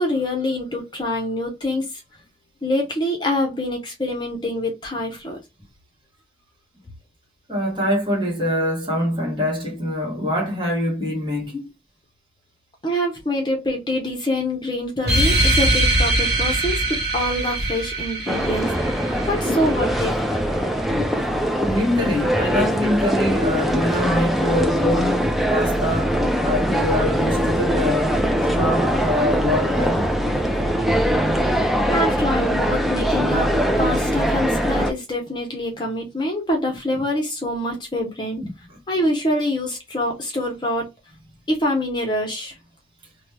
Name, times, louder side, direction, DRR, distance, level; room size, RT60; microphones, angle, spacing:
voice 1, 0.0-2.0 2.6-5.4 12.8-18.7 19.2-20.2 31.8-33.5 33.8-38.4 38.9-40.9 41.5-42.6, left 1 dB, 25° left, 0.7 m, -25 dB
voice 2, 7.5-11.7 18.6-18.7 19.4-19.6 21.6-28.2 28.5-30.1 36.9-37.0 38.4-38.5, left 1 dB, 25° right, 1.3 m, -24 dB
sound 1, 15.0-20.1, right 1 dB, 70° right, 1.1 m, -22 dB
sound 2, 18.3-34.9, equal, ahead, 0.3 m, -21 dB
3.0 x 2.2 x 3.2 m
head